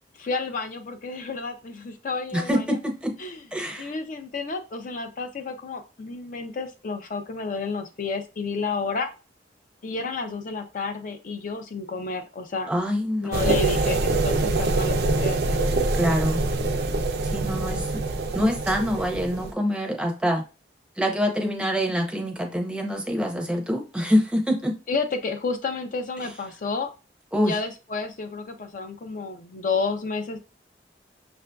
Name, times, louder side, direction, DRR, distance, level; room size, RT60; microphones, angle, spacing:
voice 1, 0.1-2.7 3.2-3.4 3.8-9.1 9.8-12.7 13.2-15.8 24.9-26.9 27.4-30.4, left 4 dB, 45° left, 7 dB, 0.4 m, -31 dB
voice 2, 2.3-3.2 3.5-3.9 12.7-13.6 15.9-16.4 17.2-18.0 18.3-20.4 21.0-24.8 26.2-26.3 27.3-27.6, equal, 5° right, 3 dB, 0.6 m, -25 dB
sound 1, 13.3-19.5, right 2 dB, 65° right, 0.4 m, -25 dB
5.8 x 2.5 x 2.2 m, 0.31 s
head